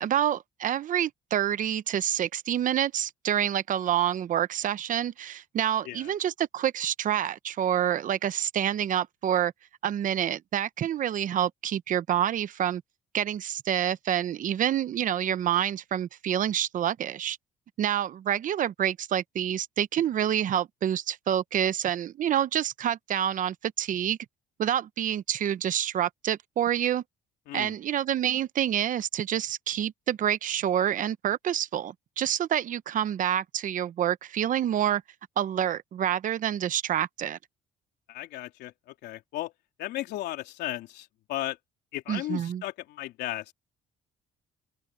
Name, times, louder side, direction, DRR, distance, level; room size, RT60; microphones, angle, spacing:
voice 1, 0.0-9.5 9.8-12.8 13.1-17.4 17.8-24.2 24.6-27.0 27.5-35.0 35.4-37.4 42.1-42.6, right 10 dB, 50° right, 0.8 m, -27 dB
voice 2, 38.1-39.5 39.8-41.6 41.9-43.5, left 15 dB, 80° left, 3.4 m, -35 dB
cardioid pair, 110°, 17 cm